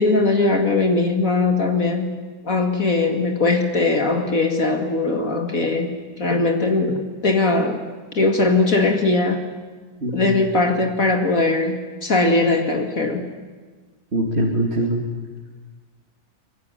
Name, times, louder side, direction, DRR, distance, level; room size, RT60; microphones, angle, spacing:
voice 1, 0.0-2.2 2.4-7.9 8.1-9.5 10.1-13.3, left 3 dB, 55° left, 4 dB, 2.6 m, -20 dB
voice 2, 10.0-10.4 14.1-15.0, right 1 dB, 40° right, 0 dB, 2.8 m, -22 dB
25.0 x 23.0 x 9.9 m, 1.4 s
omnidirectional pair, 1.7 m